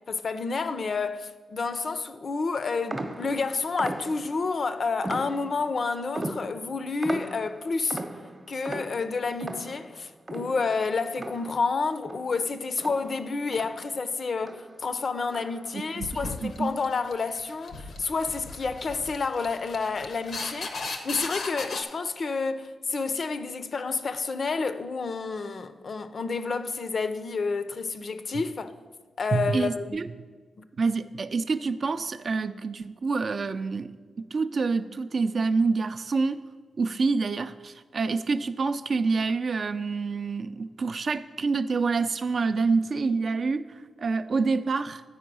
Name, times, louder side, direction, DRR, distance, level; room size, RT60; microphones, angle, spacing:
voice 1, 0.1-8.0 8.5-20.7 21.0-28.7 29.2-30.1 30.6-30.7, left 4 dB, 55° left, 0.5 m, -29 dB
sound 1, 2.9-4.5 5.0-5.8 6.1-11.8 12.0-14.1 14.4-14.8 15.3-15.8, right 2 dB, 30° right, 0.8 m, -38 dB
voice 2, 15.7-16.1 16.4-16.7 29.3-30.1 30.8-36.4 36.8-45.0, right 4 dB, 55° right, 0.4 m, -27 dB
sound 2, 16.0-21.8, left 3 dB, 80° left, 0.8 m, -37 dB
8.7 x 4.6 x 6.0 m
cardioid pair, 65°, 0 cm